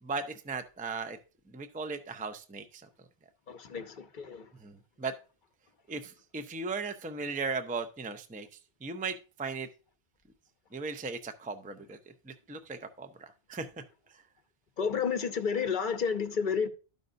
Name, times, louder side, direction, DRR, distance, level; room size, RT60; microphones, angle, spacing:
voice 1, 0.0-1.2 1.5-2.8 4.6-5.1 5.9-8.5 8.8-9.7 10.7-12.0 12.3-13.7, right 4 dB, 10° right, 0.4 m, -37 dB
voice 2, 3.5-4.5 14.8-16.7, left 6 dB, 55° left, 0.9 m, -31 dB
12.5 x 5.3 x 2.6 m
omnidirectional pair, 1.1 m